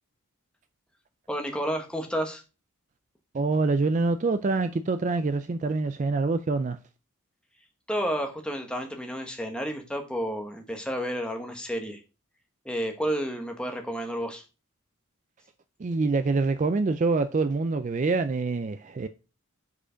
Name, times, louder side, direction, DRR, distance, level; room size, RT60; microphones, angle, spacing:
voice 1, 1.3-2.4 7.9-12.0 12.6-14.4, equal, 5° left, 1.1 m, -31 dB
voice 2, 3.3-6.8 15.8-19.1, right 3 dB, 35° right, 0.3 m, -25 dB
6.8 x 5.0 x 5.0 m
head